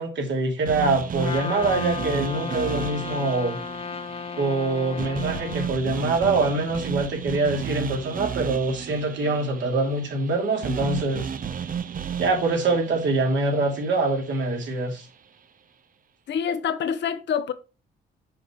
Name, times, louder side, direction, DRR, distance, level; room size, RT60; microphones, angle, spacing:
voice 1, 0.0-3.6 4.4-11.3 12.2-15.1, right 3 dB, 65° right, 2.5 m, -24 dB
sound 1, 0.7-14.8, right 7 dB, 45° right, 0.7 m, -34 dB
Trumpet, 1.1-5.7, left 6 dB, 30° left, 0.6 m, -34 dB
voice 2, 16.3-17.5, left 7 dB, 65° left, 0.9 m, -26 dB
6.2 x 5.0 x 4.9 m
cardioid pair, 90°, 20 cm